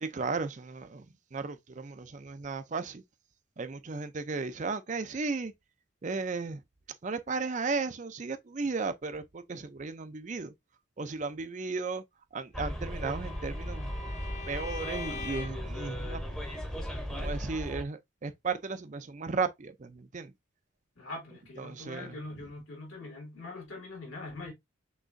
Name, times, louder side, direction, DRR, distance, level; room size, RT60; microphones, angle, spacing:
voice 1, 0.0-1.1 1.3-3.0 3.6-5.5 6.0-6.6 7.0-10.5 11.0-12.0 12.3-13.9 14.5-16.2 17.1-20.3 21.6-22.2, right 4 dB, 35° right, 0.5 m, -35 dB
Bus, 12.5-17.8, equal, 5° left, 0.8 m, -36 dB
Bowed string instrument, 12.7-15.7, left 5 dB, 35° left, 0.6 m, -44 dB
voice 2, 21.0-24.5, left 2 dB, 80° left, 3.0 m, -43 dB
6.1 x 3.0 x 2.6 m
head